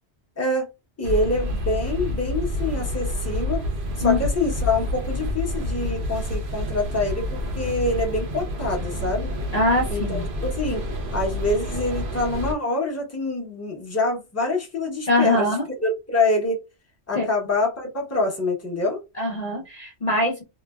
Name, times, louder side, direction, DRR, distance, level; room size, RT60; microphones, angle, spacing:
voice 1, 0.4-0.7 1.0-3.6 4.0-9.3 9.9-10.8 11.1-15.5 15.8-16.6 17.1-19.0, left 2 dB, 15° left, 0.9 m, -25 dB
sound 1, 1.0-12.5, left 1 dB, 70° right, 1.0 m, -28 dB
voice 2, 9.5-10.3 15.1-15.6 17.1-17.2 19.2-20.4, left 2 dB, 40° left, 0.7 m, -22 dB
3.0 x 2.5 x 2.2 m
omnidirectional pair, 1.2 m